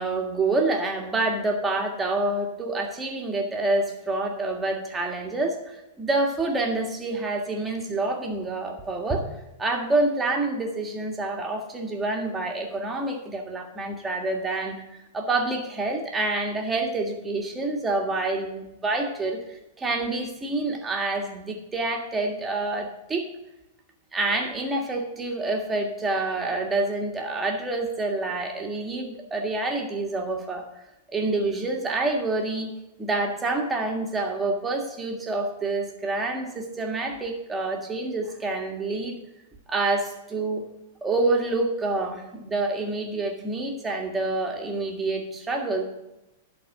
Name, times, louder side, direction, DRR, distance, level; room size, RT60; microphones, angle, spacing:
voice 1, 0.0-9.3 9.6-14.8 15.1-23.3 24.1-30.7 31.1-32.7 33.0-39.2 39.7-40.6 41.0-45.8, right 2 dB, 15° right, 1 dB, 1.7 m, -27 dB
12.0 x 4.3 x 6.5 m, 0.96 s
hypercardioid pair, 130°, 0 cm